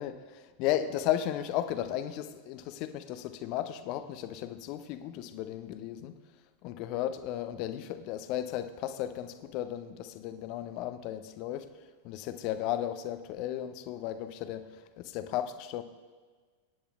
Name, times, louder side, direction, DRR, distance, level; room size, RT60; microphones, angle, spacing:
voice 1, 0.0-6.1 6.6-11.7 12.0-15.8, left 11 dB, 40° left, 11 dB, 0.6 m, -35 dB
22.5 x 10.0 x 2.4 m, 1.5 s
figure-of-eight pair, 90°, 0 cm